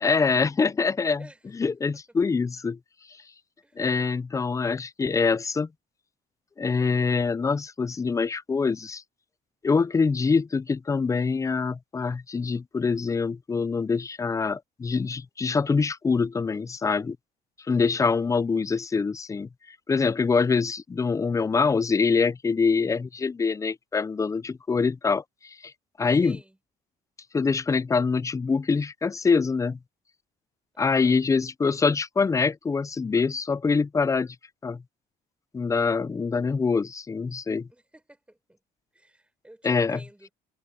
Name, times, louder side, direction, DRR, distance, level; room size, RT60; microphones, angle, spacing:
voice 1, 0.0-1.3 1.5-2.8 3.8-5.7 6.6-9.0 9.6-17.2 17.7-19.5 19.9-25.7 26.0-26.4 27.3-29.8 30.8-34.3 34.6-34.8 35.5-37.7 39.6-40.0, left 4 dB, 20° left, 0.5 m, -24 dB
voice 2, 17.9-18.3 26.2-26.6 30.7-31.2 37.7-38.6 38.9-40.3, right 1 dB, 5° right, 5.9 m, -50 dB
cardioid pair, 110°, 17 cm